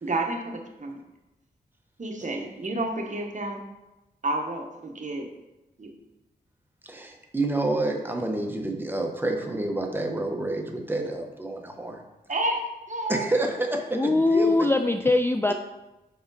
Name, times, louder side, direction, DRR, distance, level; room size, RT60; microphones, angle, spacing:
voice 1, 0.0-1.0 2.0-3.6 4.2-5.3 5.8-5.9 12.3-12.6 12.9-13.2, right 2 dB, 45° right, 1 dB, 1.1 m, -30 dB
voice 2, 6.8-12.0 13.1-14.7, right 2 dB, 10° right, 2 dB, 1.0 m, -28 dB
voice 3, 13.9-15.5, left 2 dB, 15° left, 6 dB, 0.3 m, -21 dB
5.0 x 4.8 x 4.1 m, 0.99 s
cardioid pair, 50°, 17 cm